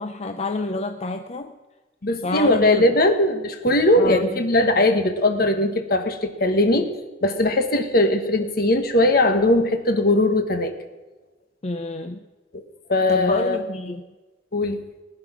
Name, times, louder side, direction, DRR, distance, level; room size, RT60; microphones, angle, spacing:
voice 1, 0.0-1.5 2.2-2.8 3.9-4.4 11.6-12.2 13.1-14.0, left 2 dB, 40° left, 7 dB, 0.6 m, -28 dB
voice 2, 2.0-6.9 7.2-10.7 12.5-12.6 12.9-13.6 14.5-14.8, left 1 dB, 60° left, 7 dB, 1.4 m, -19 dB
19.5 x 9.8 x 6.1 m, 1.2 s
head